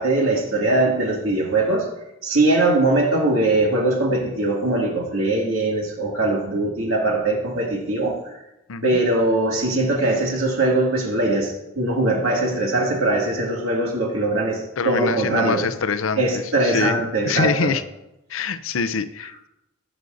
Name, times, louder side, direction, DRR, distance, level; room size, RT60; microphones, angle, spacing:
voice 1, 0.0-1.9 2.2-8.3 8.8-15.7 16.2-17.7, right 2 dB, 85° right, -1 dB, 2.3 m, -21 dB
voice 2, 8.7-9.0 14.8-17.8 18.3-19.5, left 5 dB, 70° left, 12 dB, 0.5 m, -25 dB
18.0 x 6.3 x 2.6 m, 0.92 s
head